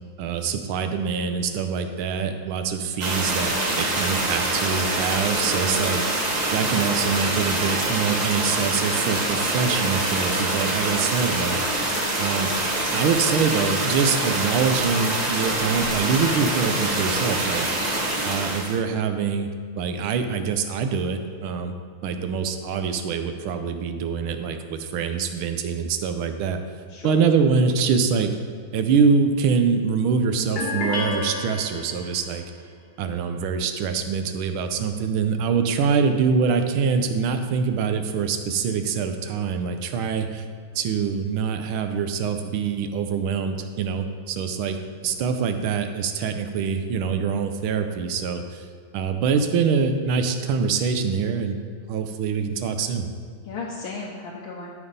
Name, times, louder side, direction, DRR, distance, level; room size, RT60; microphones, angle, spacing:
voice 1, 0.2-11.6 12.2-12.5 12.9-17.7 18.2-19.5 19.8-21.7 22.0-26.6 27.0-28.3 28.7-32.4 33.0-40.4 40.7-48.7 48.9-51.6 51.9-53.1, right 5 dB, 80° right, 7 dB, 1.5 m, -24 dB
sound 1, 3.0-18.8, right 1 dB, 35° right, 0.6 m, -25 dB
voice 2, 17.9-18.2 26.9-27.2 45.1-45.2 53.4-54.7, left 4 dB, 75° left, -3 dB, 1.6 m, -36 dB
sound 2, 30.6-32.3, left 2 dB, 35° left, 1.2 m, -29 dB
12.5 x 5.4 x 4.0 m, 2.1 s
omnidirectional pair, 2.3 m